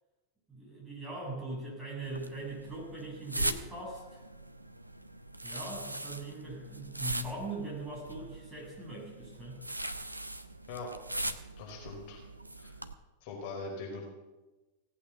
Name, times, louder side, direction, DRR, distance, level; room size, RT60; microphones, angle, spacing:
voice 1, 0.5-4.2 5.4-9.6, right 2 dB, 10° right, -4 dB, 6.8 m, -41 dB
sound 1, 2.0-12.9, right 1 dB, 85° right, 0.7 m, -40 dB
voice 2, 11.6-12.2 12.6-12.8 13.2-14.0, left 3 dB, 45° left, -2 dB, 4.9 m, -41 dB
17.5 x 8.5 x 7.2 m, 1.1 s
figure-of-eight pair, 90°, 0 cm